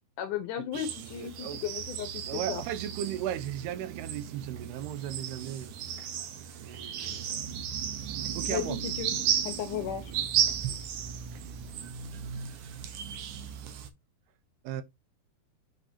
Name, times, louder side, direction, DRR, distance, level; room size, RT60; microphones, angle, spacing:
voice 1, 0.2-2.6 8.5-9.2 9.4-10.1, left 9 dB, 75° left, 2.0 m, -35 dB
sound 1, 0.7-13.9, right 8 dB, 70° right, 2.2 m, -34 dB
voice 2, 0.8-1.6 2.3-7.5 7.9-8.8 10.4-10.5 14.6-14.8, right 10 dB, 90° right, 2.8 m, -37 dB
7.8 x 4.8 x 2.8 m
omnidirectional pair, 4.5 m